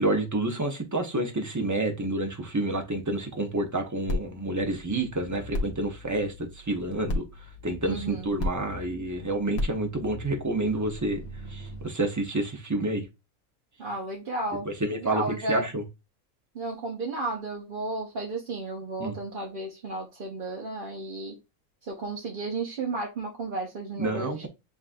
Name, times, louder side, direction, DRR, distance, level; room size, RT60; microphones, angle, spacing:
voice 1, 0.0-7.2 7.6-11.2 11.5-13.0 14.6-15.2 15.5-15.8 19.0-19.2 24.0-24.5, right 2 dB, 20° right, 0.5 m, -29 dB
sound 1, 4.1-11.9, left 1 dB, 70° left, 1.3 m, -36 dB
voice 2, 7.8-8.3 13.8-15.7 16.5-21.4 21.8-24.3, right 2 dB, 45° right, 0.8 m, -33 dB
7.4 x 2.5 x 2.5 m
omnidirectional pair, 1.5 m